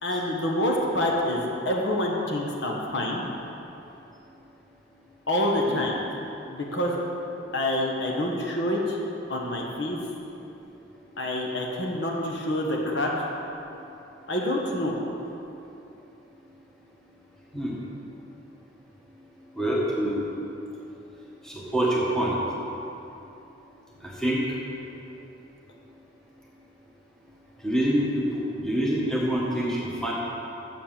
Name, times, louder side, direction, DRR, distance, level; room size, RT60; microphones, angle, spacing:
voice 1, 0.0-3.2 5.3-6.0 6.5-7.0 7.5-9.0 9.3-10.0 11.2-13.1 14.3-15.0, left 1 dB, 60° left, -1 dB, 1.2 m, -27 dB
voice 2, 19.6-20.2 21.7-22.4 24.2-24.4 27.6-28.0 28.6-30.1, right 1 dB, 5° left, -5 dB, 1.5 m, -25 dB
7.5 x 7.4 x 7.3 m, 2.9 s
head